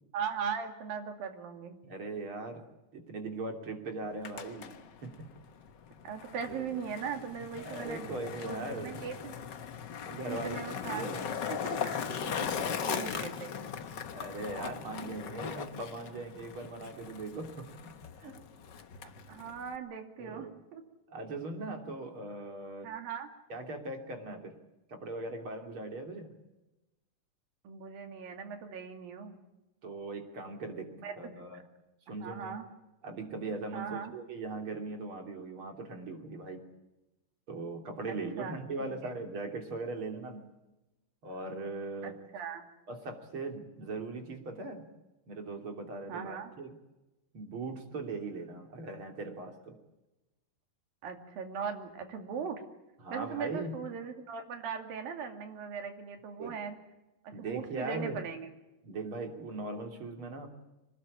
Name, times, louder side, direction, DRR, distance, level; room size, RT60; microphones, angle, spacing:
voice 1, 0.1-1.8 6.0-8.2 8.4-9.4 10.3-12.0 12.8-13.5 19.3-20.8 22.8-23.3 27.6-29.4 31.0-31.3 32.1-32.7 33.7-34.1 38.1-39.1 42.0-42.7 46.1-46.5 51.0-52.6 53.1-56.8 57.2-58.5, right 6 dB, 90° right, 5 dB, 4.3 m, -39 dB
voice 2, 1.8-2.7 2.9-4.8 5.0-5.3 6.5-6.8 7.6-9.0 10.1-10.6 10.9-11.3 12.3-12.7 14.1-18.4 20.2-20.5 21.1-22.9 23.5-24.6 24.9-26.4 29.8-31.6 32.1-32.6 33.0-36.6 37.5-40.5 41.2-42.2 42.9-44.9 45.3-46.7 47.3-49.8 53.0-53.8 56.4-56.6 57.3-58.2 58.8-60.5, right 3 dB, 40° right, 4 dB, 3.7 m, -40 dB
Skateboard, 4.0-19.8, left 7 dB, 80° left, 0.9 m, -39 dB
25.5 x 19.5 x 8.6 m, 1.0 s
omnidirectional pair, 4.0 m